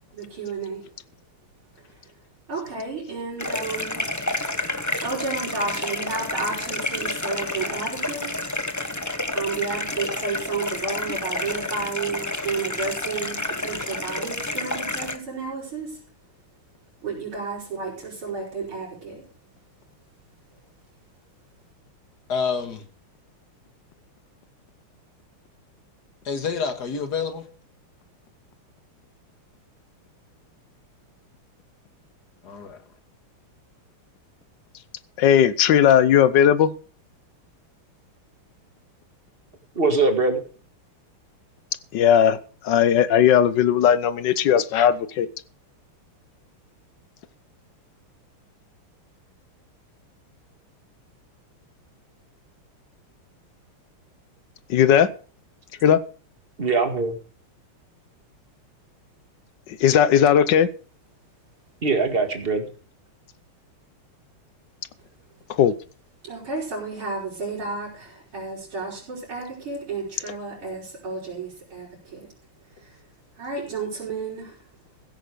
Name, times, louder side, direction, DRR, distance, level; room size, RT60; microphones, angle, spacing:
voice 1, 0.1-0.9 2.5-4.1 5.0-8.3 9.3-16.0 17.0-19.2 66.2-72.3 72.8-73.0 73.4-74.6, right 4 dB, 70° right, 6.1 m, -32 dB
sound 1, 3.4-15.2, left 2 dB, 25° left, 0.4 m, -29 dB
voice 2, 22.3-22.8 26.3-27.5 32.4-32.8, left 5 dB, 50° left, 2.2 m, -28 dB
voice 3, 35.2-36.7 41.9-42.4 42.6-45.3 54.7-55.1 55.8-56.0 59.8-60.7 65.6-65.7, left 9 dB, 65° left, 1.3 m, -17 dB
voice 4, 39.8-40.4 56.6-57.2 61.8-62.6, right 3 dB, 25° right, 2.1 m, -22 dB
15.5 x 8.9 x 5.1 m
omnidirectional pair, 2.4 m